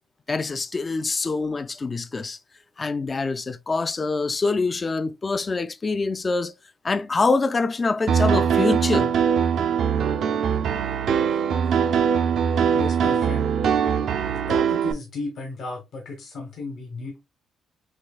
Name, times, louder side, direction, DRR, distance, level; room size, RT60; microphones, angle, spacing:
voice 1, 0.3-2.4 2.8-6.5 6.8-9.1 10.0-10.1, left 3 dB, 30° left, 0.3 m, -25 dB
Piano, 8.1-14.9, right 7 dB, 70° right, 0.4 m, -22 dB
voice 2, 12.7-13.5 14.3-17.2, left 1 dB, 65° left, 1.0 m, -34 dB
6.3 x 2.3 x 2.3 m
cardioid pair, 90°, 0 cm